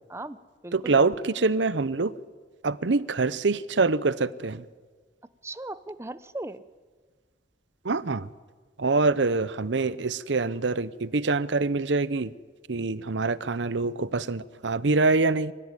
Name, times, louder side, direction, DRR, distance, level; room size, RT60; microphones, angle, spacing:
voice 1, 0.1-0.9 5.4-6.6, right 2 dB, 15° right, 14 dB, 0.6 m, -38 dB
voice 2, 0.7-2.1 2.6-4.6 7.8-8.3 8.8-12.3 12.7-15.5, right 3 dB, 75° right, 17 dB, 0.8 m, -25 dB
25.0 x 16.0 x 9.8 m, 1.5 s
head